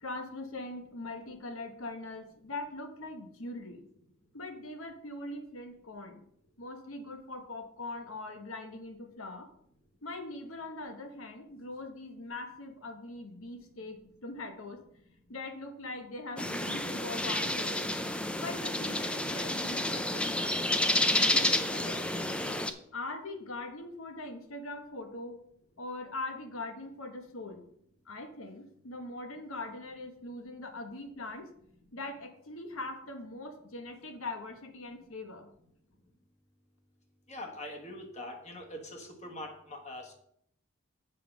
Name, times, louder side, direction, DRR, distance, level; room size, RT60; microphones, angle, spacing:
voice 1, 0.0-3.8 4.3-6.2 6.6-9.5 10.0-14.8 15.3-17.9 18.4-20.7 21.1-22.4 22.9-25.4 25.8-27.6 28.1-31.5 31.9-35.5, left 2 dB, 75° left, 6 dB, 1.3 m, -42 dB
sound 1, 16.4-22.7, left 1 dB, 5° left, 0.4 m, -30 dB
voice 2, 37.3-40.1, left 1 dB, 30° left, 2 dB, 1.6 m, -43 dB
7.6 x 5.3 x 6.0 m, 0.70 s
head